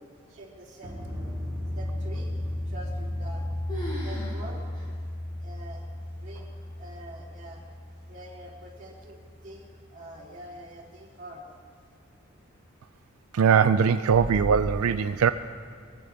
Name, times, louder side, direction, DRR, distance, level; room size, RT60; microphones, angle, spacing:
voice 1, 0.3-1.3 1.8-2.3 2.7-3.5 4.0-4.6 5.4-7.6 8.1-11.4, right 1 dB, 35° right, -6 dB, 3.6 m, -45 dB
sound 1, 0.8-9.2 14.1-14.8, left 1 dB, 10° right, 3.1 m, -34 dB
sound 2, 2.9-3.4 3.7-4.4 4.7-4.9 5.5-5.6 6.4-6.7, equal, 25° left, 4.9 m, -38 dB
voice 2, 13.3-15.3, right 6 dB, 90° right, 10 dB, 0.4 m, -21 dB
23.0 x 15.0 x 3.5 m, 2.3 s
head